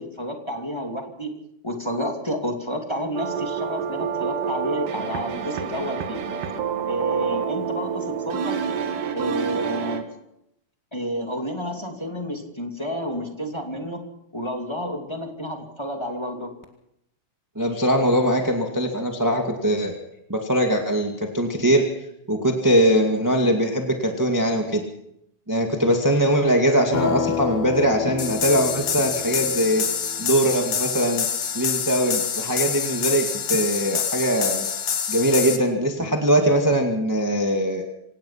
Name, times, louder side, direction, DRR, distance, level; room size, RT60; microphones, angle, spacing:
voice 1, 0.0-1.3 1.6-6.2 6.9-8.6 9.1-10.1 10.9-14.0 14.3-16.5, equal, 10° left, 2 dB, 2.1 m, -30 dB
sound 1, 3.2-10.0, right 7 dB, 90° right, 3.5 m, -28 dB
voice 2, 17.5-19.9 20.3-21.8 22.3-24.8 25.5-29.8 30.2-31.2 31.5-34.7 35.1-37.8, equal, 10° right, 2 dB, 1.4 m, -21 dB
sound 2, 26.9-30.7, left 9 dB, 70° left, 3.2 m, -30 dB
sound 3, 28.2-35.6, left 7 dB, 55° left, 2.6 m, -26 dB
26.5 x 17.5 x 5.9 m, 0.79 s
omnidirectional pair, 3.7 m